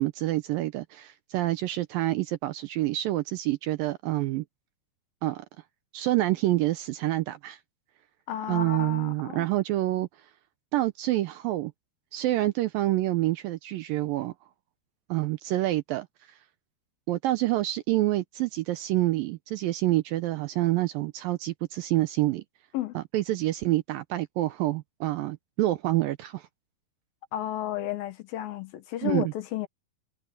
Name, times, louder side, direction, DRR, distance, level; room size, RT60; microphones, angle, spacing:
voice 1, 0.0-4.4 5.2-5.5 5.9-7.6 8.5-10.1 10.7-11.7 12.1-14.3 15.1-16.1 17.1-22.4 23.0-26.5 29.0-29.3, right 16 dB, 80° right, 2.1 m, -27 dB
voice 2, 8.3-9.5 22.7-23.0 27.3-29.7, left 12 dB, 70° left, 2.7 m, -32 dB
omnidirectional pair, 4.6 m